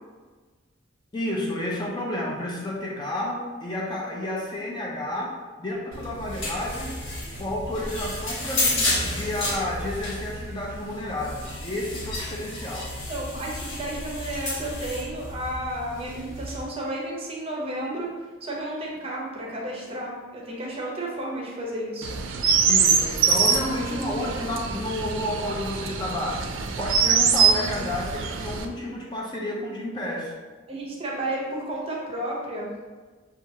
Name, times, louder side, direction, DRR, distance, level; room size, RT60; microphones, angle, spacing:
voice 1, 1.1-7.0 7.4-12.9 22.7-26.5 26.8-30.3, left 1 dB, 20° left, -3 dB, 0.5 m, -31 dB
sound 1, 5.9-16.6, left 1 dB, 85° left, 1.1 m, -31 dB
voice 2, 13.1-18.1 18.4-22.2 30.7-32.7, right 1 dB, 30° right, -2 dB, 0.7 m, -32 dB
Chirp tweet, 22.0-28.7, right 6 dB, 80° right, 0.4 m, -24 dB
5.8 x 2.4 x 2.8 m, 1.4 s
head